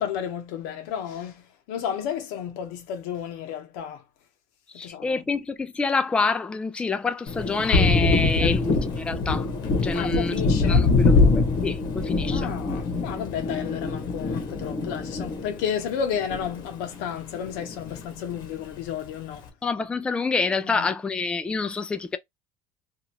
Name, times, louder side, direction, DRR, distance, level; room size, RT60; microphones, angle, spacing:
voice 1, 0.0-4.0 4.8-5.2 8.4-8.6 9.9-10.9 12.3-19.5 20.7-20.9, left 8 dB, 85° left, 0.9 m, -32 dB
voice 2, 4.7-9.5 9.8-10.4 10.7-12.5 19.6-22.2, left 4 dB, 10° left, 0.3 m, -27 dB
Thunder, 7.3-17.0 17.3-18.5, left 3 dB, 65° left, 1.0 m, -24 dB
2.8 x 2.4 x 2.8 m
cardioid pair, 120°, 8 cm